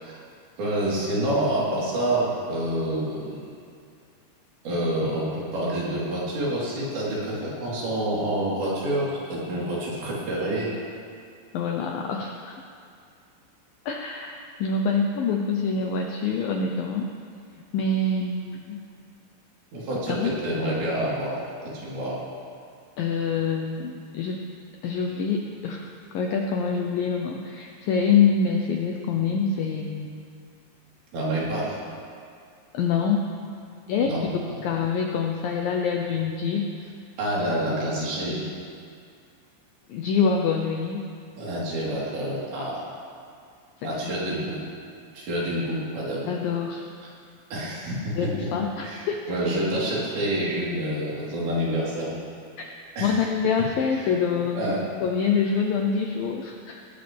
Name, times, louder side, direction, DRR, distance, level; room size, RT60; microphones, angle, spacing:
voice 1, 0.6-3.4 4.6-10.8 19.7-22.2 31.1-31.8 34.0-34.6 37.2-38.4 41.4-42.8 43.8-44.6 45.2-46.3 47.5-48.5 48.8-52.1 53.0-53.3 53.9-54.1 54.5-54.8, right 1 dB, 65° right, -7 dB, 6.1 m, -28 dB
voice 2, 11.5-12.6 13.9-17.1 17.5-18.8 20.1-20.3 23.0-24.4 24.8-30.1 32.7-33.3 33.9-36.6 39.9-41.0 43.8-44.1 46.2-46.9 48.2-49.2 52.6-52.7 53.0-54.7 55.0-56.8, left 5 dB, 90° left, 2 dB, 2.0 m, -25 dB
19.5 x 19.0 x 3.5 m, 2.3 s
omnidirectional pair, 5.3 m